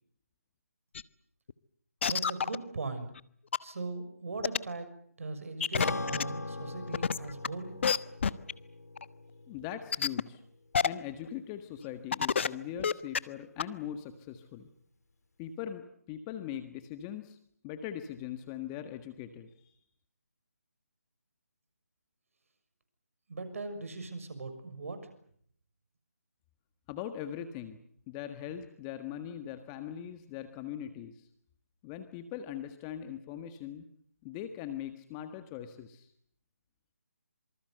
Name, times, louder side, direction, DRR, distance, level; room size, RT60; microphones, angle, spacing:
sound 1, 0.9-1.0 1.5-1.6 2.0-2.5 3.2-3.3 3.5-3.6 4.4-4.6 5.6-6.2 6.9-7.5 7.8-8.0 8.2-8.5 9.0-9.1 9.9-10.2 10.7-10.9 11.2-11.3 11.8-11.9 12.1-12.5 12.8-13.2 13.6-13.7, left 6 dB, 50° left, 1.3 m, -27 dB
voice 1, 2.1-3.1 3.6-4.9 5.2-7.7 23.3-25.0, right 3 dB, 60° right, 9 dB, 6.5 m, -39 dB
Acoustic guitar / Strum, 5.8-10.5, left 2 dB, 85° left, 2.4 m, -40 dB
voice 2, 9.5-10.4 10.8-14.7 15.4-17.4 17.6-19.7 26.9-31.3 31.8-33.9 34.2-36.1, left 10 dB, 20° left, 8 dB, 1.6 m, -41 dB
27.0 x 25.5 x 8.0 m, 0.65 s
figure-of-eight pair, 155°, 8 cm